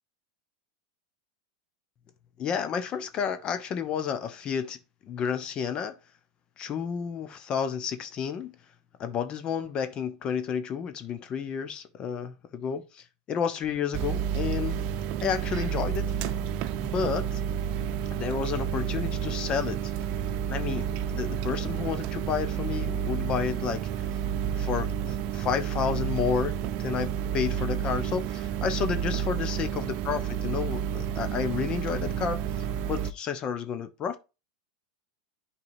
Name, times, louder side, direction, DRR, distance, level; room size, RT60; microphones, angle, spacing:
voice 1, 2.4-4.8 5.1-5.9 6.6-8.5 9.0-14.8 15.2-16.1 16.8-17.4 18.1-19.9 20.5-24.1 24.6-32.4 32.8-34.2, left 7 dB, 35° left, 0.9 m, -31 dB
sound 1, 13.9-33.1, right 9 dB, 50° right, 0.7 m, -30 dB
10.5 x 4.6 x 2.7 m
hypercardioid pair, 115°, 3 cm